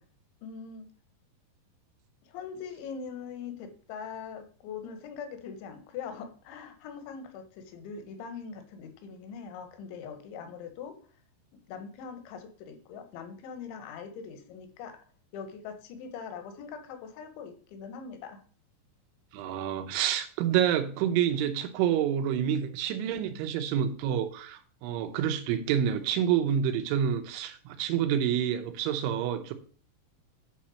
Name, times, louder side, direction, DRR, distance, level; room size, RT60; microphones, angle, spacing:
voice 1, 0.4-0.9 2.3-11.0 11.5-15.0 15.3-18.4, left 6 dB, 80° left, 3.5 m, -42 dB
voice 2, 19.3-29.5, right 9 dB, 85° right, 3.3 m, -28 dB
9.7 x 4.3 x 6.2 m
omnidirectional pair, 5.3 m